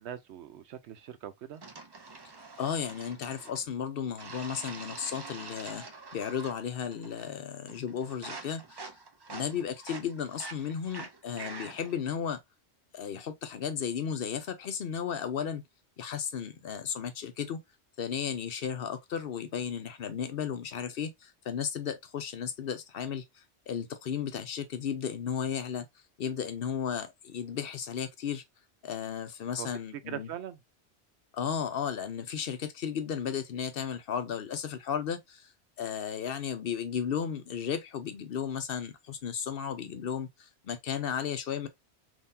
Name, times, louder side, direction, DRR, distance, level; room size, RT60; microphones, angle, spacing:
voice 1, 0.0-1.6 29.6-29.7 30.1-30.6, right 10 dB, 80° right, 0.9 m, -41 dB
sound 1, 1.6-3.6 4.2-6.6 6.9-7.4 7.7-12.0, right 3 dB, 40° right, 0.4 m, -45 dB
voice 2, 2.6-5.8 6.1-8.9 9.3-12.4 12.9-15.6 16.0-17.6 18.0-25.9 26.2-28.4 28.8-30.3 31.3-35.5 35.8-41.7, left 7 dB, 60° left, 0.8 m, -34 dB
3.8 x 2.7 x 2.6 m
omnidirectional pair, 1.1 m